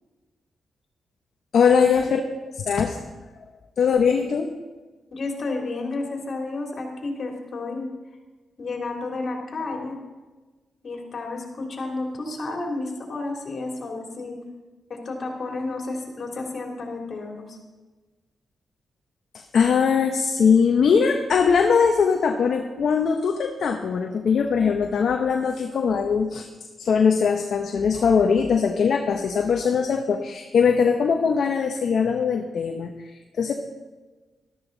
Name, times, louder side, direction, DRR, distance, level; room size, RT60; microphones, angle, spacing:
voice 1, 1.5-2.2 2.6-3.0 3.8-4.5 19.5-26.5 26.8-33.5, left 6 dB, 70° left, 4 dB, 0.9 m, -21 dB
voice 2, 5.1-7.9 8.6-10.0 10.8-14.4 14.9-17.6, left 3 dB, 55° left, 0 dB, 3.1 m, -31 dB
13.5 x 13.0 x 4.0 m, 1.2 s
cardioid pair, 70°, 0 cm